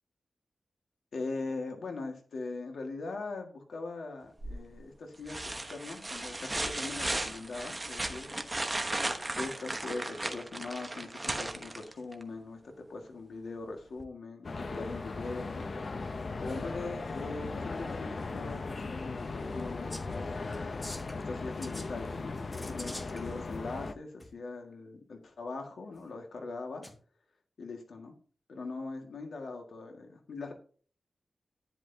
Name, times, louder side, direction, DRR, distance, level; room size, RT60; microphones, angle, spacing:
voice 1, 1.1-8.4 8.9-15.7 16.4-20.3 21.2-22.3 22.7-26.9 27.6-28.1 28.5-30.5, left 3 dB, 85° left, 4 dB, 1.8 m, -41 dB
sound 1, 4.4-4.8 5.3-12.2 14.0-14.1, right 2 dB, 15° right, 1.0 m, -36 dB
sound 2, 14.4-23.9, left 3 dB, 45° left, 0.6 m, -38 dB
sound 3, 19.9-20.2 20.5-21.2 21.6-21.9 22.5-23.2 24.2-24.3 26.8-27.0, left 1 dB, 15° left, 1.1 m, -45 dB
11.0 x 10.5 x 2.8 m, 0.43 s
wide cardioid pair, 165°, 0 cm